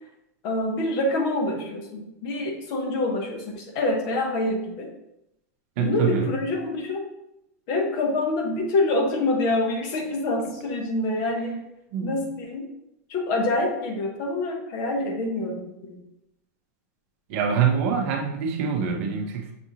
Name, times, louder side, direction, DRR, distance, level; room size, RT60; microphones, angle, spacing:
voice 1, 0.4-4.9 5.8-7.0 7.7-11.6 12.0-12.7 13.1-16.0, left 2 dB, 45° left, 2 dB, 0.8 m, -26 dB
voice 2, 5.8-6.3 11.9-12.2 17.3-19.5, right 7 dB, 55° right, 3 dB, 0.7 m, -25 dB
5.9 x 2.5 x 2.8 m, 0.85 s
supercardioid pair, 160°, 8 cm